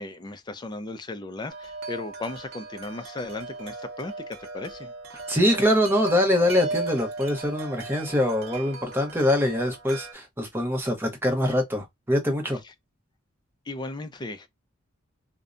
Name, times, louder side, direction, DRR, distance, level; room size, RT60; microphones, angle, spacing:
voice 1, 0.0-4.9 13.7-14.5, left 2 dB, 20° left, 0.4 m, -36 dB
Wind chime, 1.5-10.1, right 3 dB, 85° right, 0.7 m, -37 dB
voice 2, 5.3-12.6, left 1 dB, 10° right, 0.8 m, -24 dB
2.6 x 2.1 x 2.4 m
head